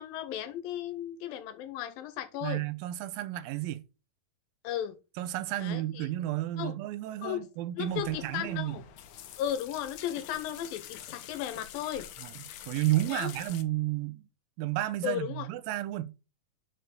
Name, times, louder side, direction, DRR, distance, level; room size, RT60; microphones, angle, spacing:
voice 1, 0.0-2.6 4.6-5.0 5.6-6.1 6.6-6.7 7.2-7.4 7.8-8.8 9.4-12.1 13.1-13.3 15.0-15.5, left 11 dB, 90° left, 2.7 m, -35 dB
voice 2, 2.4-3.8 5.2-8.8 12.2-12.3 12.7-14.3 14.6-16.1, right 15 dB, 85° right, 2.4 m, -32 dB
sound 1, 7.9-13.6, left 11 dB, 75° left, 2.1 m, -46 dB
6.6 x 4.4 x 6.3 m
omnidirectional pair, 4.1 m